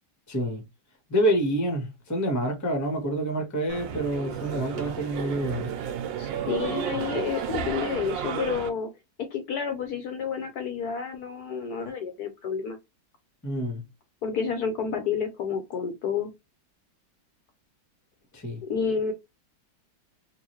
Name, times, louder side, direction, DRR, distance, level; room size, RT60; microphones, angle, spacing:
voice 1, 0.3-0.6 1.1-5.7 13.4-13.8 18.3-18.6, right 1 dB, 15° left, 0.8 m, -27 dB
sound 1, 3.7-8.7, right 8 dB, 80° right, 1.4 m, -32 dB
voice 2, 6.2-8.9 9.3-12.8 14.2-16.3 18.6-19.1, left 6 dB, 65° left, 1.1 m, -30 dB
3.9 x 2.5 x 2.9 m
omnidirectional pair, 2.0 m